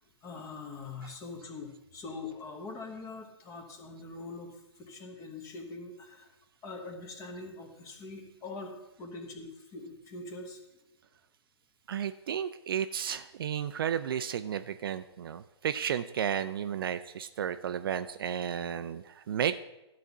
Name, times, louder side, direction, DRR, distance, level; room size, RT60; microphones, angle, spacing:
voice 1, 0.2-6.3 6.6-10.6, left 3 dB, 20° left, 4 dB, 1.2 m, -43 dB
voice 2, 11.9-19.6, right 9 dB, 50° right, 11 dB, 0.4 m, -33 dB
12.0 x 4.2 x 5.9 m, 0.97 s
figure-of-eight pair, 130°, 15 cm